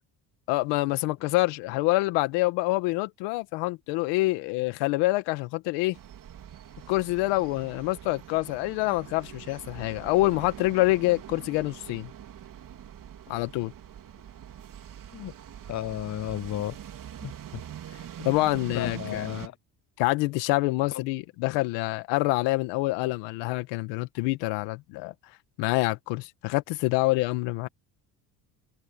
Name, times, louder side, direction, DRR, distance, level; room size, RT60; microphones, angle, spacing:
voice 1, 0.5-6.0 6.9-12.1 13.3-13.7 18.2-19.2 20.0-25.1 25.6-27.7, left 21 dB, 85° left, 1.7 m, -26 dB
sound 1, 5.9-19.5, right 10 dB, 50° right, 3.5 m, -43 dB
voice 2, 15.7-16.8 17.2-17.6 18.7-19.5 20.9-21.1, left 13 dB, 40° left, 0.7 m, -33 dB
supercardioid pair, 90°, 41 cm